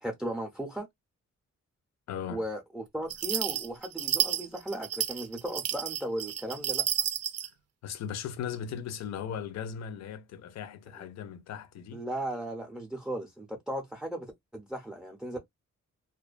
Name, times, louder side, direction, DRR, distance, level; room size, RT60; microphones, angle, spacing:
voice 1, 0.0-0.9 2.3-6.8 11.0-11.1 11.9-14.3 14.5-15.4, right 1 dB, ahead, 0.4 m, -36 dB
voice 2, 2.1-2.4 7.8-12.0, left 8 dB, 65° left, 0.5 m, -38 dB
sound 1, 3.1-7.5, right 9 dB, 60° right, 0.4 m, -31 dB
2.4 x 2.2 x 2.4 m
wide cardioid pair, 145°, 29 cm